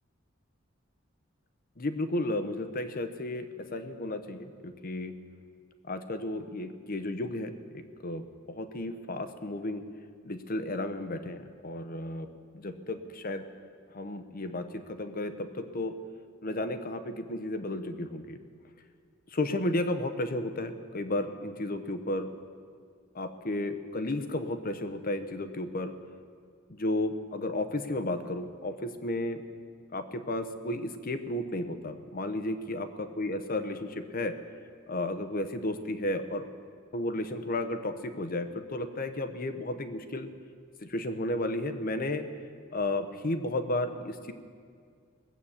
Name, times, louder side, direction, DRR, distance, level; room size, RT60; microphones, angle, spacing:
voice 1, 1.8-5.2 5.9-9.8 10.2-12.3 12.5-13.5 13.9-16.0 16.4-18.4 19.3-22.3 23.1-25.9 26.7-29.4 29.9-34.3 34.9-36.5 36.9-40.3 40.9-42.3 42.7-44.3, left 1 dB, 45° left, 9 dB, 0.9 m, -33 dB
19.5 x 8.3 x 7.2 m, 2.1 s
head